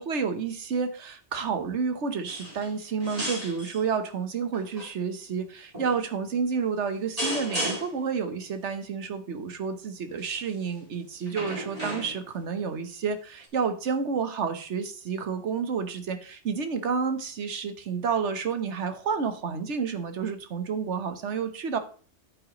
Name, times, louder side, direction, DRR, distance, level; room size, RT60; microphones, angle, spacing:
voice 1, 0.0-21.8, right 5 dB, 80° right, 9 dB, 1.4 m, -30 dB
sound 1, 2.3-2.7 3.0-3.8 4.5-4.9 5.7-6.0 7.2-8.1 10.2-10.5 11.3-12.4 13.4-13.5, equal, 30° right, 2.9 m, -34 dB
8.7 x 8.6 x 3.0 m, 0.41 s
omnidirectional pair, 1.2 m